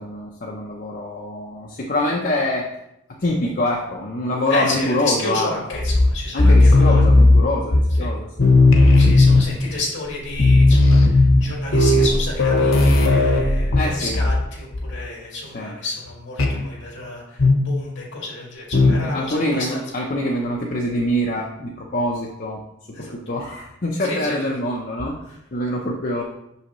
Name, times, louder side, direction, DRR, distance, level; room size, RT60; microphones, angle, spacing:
voice 1, 0.0-2.7 3.2-5.8 6.3-8.9 9.3-9.4 13.7-14.2 15.5-15.7 16.5-16.7 19.0-22.6 23.0-26.2, left 1 dB, 45° left, -2 dB, 0.6 m, -25 dB
voice 2, 4.5-7.1 8.0-8.2 9.0-19.8 22.9-23.1 24.0-24.5, left 2 dB, 65° left, -3 dB, 2.1 m, -31 dB
sound 1, 5.7-8.1 8.4-9.7 10.1-10.2 10.3-14.5 14.7-15.0 16.4-16.6 17.4-17.8 18.7-19.1, left 2 dB, 85° left, 0.9 m, -15 dB
6.4 x 5.5 x 3.0 m, 0.83 s
head